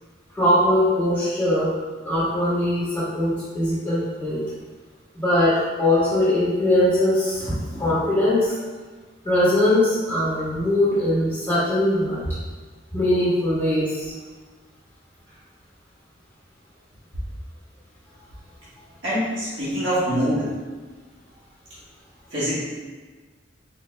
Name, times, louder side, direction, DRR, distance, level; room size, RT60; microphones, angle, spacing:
voice 1, 0.3-1.7 2.0-4.4 5.1-8.6 9.2-12.3 12.9-14.1, left 1 dB, 15° left, -12 dB, 1.3 m, -21 dB
voice 2, 19.0-20.5 22.3-22.6, equal, 75° right, -11 dB, 1.5 m, -24 dB
3.9 x 3.9 x 2.2 m, 1.4 s
head